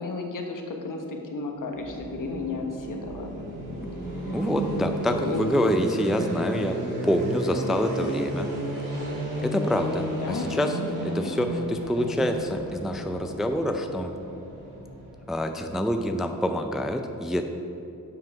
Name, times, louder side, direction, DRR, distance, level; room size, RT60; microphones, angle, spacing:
voice 1, 0.0-3.3 4.3-4.4 5.2-5.4 10.2-11.3, left 3 dB, 65° left, 2 dB, 1.2 m, -33 dB
sound 1, 1.7-15.6, right 1 dB, 65° right, 2.1 m, -33 dB
voice 2, 4.3-6.8 7.0-8.5 9.4-14.1 15.3-17.4, equal, ahead, 5 dB, 0.4 m, -26 dB
7.8 x 5.5 x 5.8 m, 2.6 s
wide cardioid pair, 105°, 35 cm